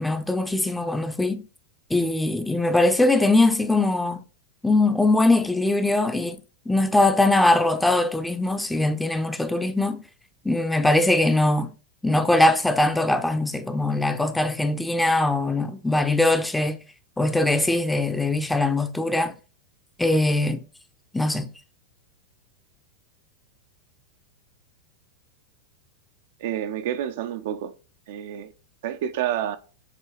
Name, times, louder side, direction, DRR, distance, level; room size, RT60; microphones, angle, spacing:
voice 1, 0.0-1.4 1.9-4.2 4.6-6.4 6.7-10.0 10.4-11.7 12.0-16.8 17.2-19.4 20.0-20.6 21.1-21.5, left 2 dB, 5° left, 0.6 m, -21 dB
voice 2, 26.4-27.7 28.1-28.5 28.8-29.6, right 10 dB, 55° right, 0.6 m, -29 dB
7.5 x 3.0 x 4.6 m
figure-of-eight pair, 90°, 0 cm